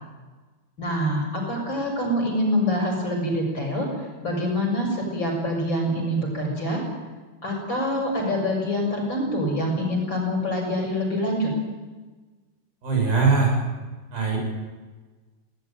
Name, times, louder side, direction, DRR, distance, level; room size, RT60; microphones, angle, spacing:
voice 1, 0.8-6.8 7.4-11.5, equal, 30° left, 1 dB, 7.3 m, -25 dB
voice 2, 12.8-13.5 14.1-14.4, right 4 dB, 75° right, 0 dB, 9.1 m, -20 dB
20.0 x 18.5 x 9.2 m, 1.3 s
omnidirectional pair, 4.3 m